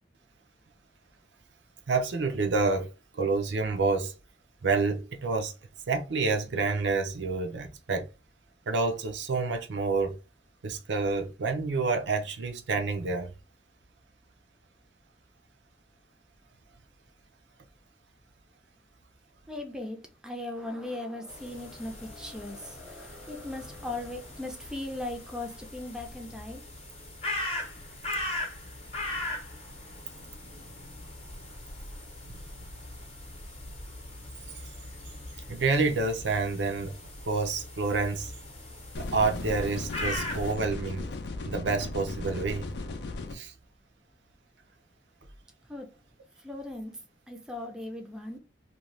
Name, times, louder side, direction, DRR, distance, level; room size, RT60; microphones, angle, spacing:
voice 1, 1.9-4.1 4.6-5.5 5.9-8.1 8.7-10.2 10.6-13.3 35.5-36.9 37.3-38.3 39.1-41.1 41.4-42.7 43.3-43.5, right 4 dB, 75° right, 0.5 m, -28 dB
voice 2, 19.5-26.6 45.7-45.9 46.4-46.9 47.3-48.4, left 2 dB, 5° right, 0.4 m, -38 dB
sound 1, 21.3-40.5, left 1 dB, 35° left, 0.7 m, -40 dB
sound 2, 38.9-43.3, left 3 dB, 65° left, 0.4 m, -36 dB
2.6 x 2.2 x 3.1 m
head